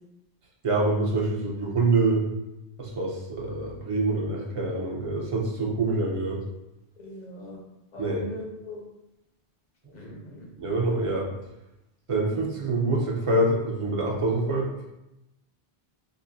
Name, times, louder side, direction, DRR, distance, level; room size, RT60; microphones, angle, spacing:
voice 1, 0.6-2.2 2.8-6.4 8.0-8.2 10.6-11.3 12.1-14.7, right 2 dB, 35° right, -2 dB, 0.7 m, -25 dB
voice 2, 7.0-7.6 7.9-8.8 9.9-10.5, left 1 dB, 50° left, -1 dB, 0.8 m, -39 dB
5.0 x 2.1 x 2.7 m, 0.91 s
omnidirectional pair, 1.0 m